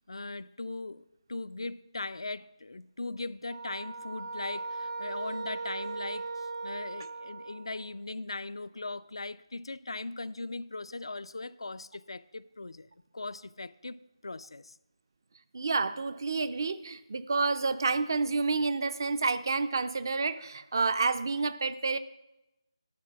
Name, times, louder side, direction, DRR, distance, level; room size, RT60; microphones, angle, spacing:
voice 1, 0.1-12.9 13.1-14.8, left 3 dB, 70° left, 0.3 m, -39 dB
sound 1, 3.5-7.9, right 3 dB, 70° right, 1.1 m, -38 dB
voice 2, 15.5-22.0, right 4 dB, 45° right, 0.4 m, -29 dB
11.0 x 3.9 x 7.0 m
figure-of-eight pair, 160°, 3 cm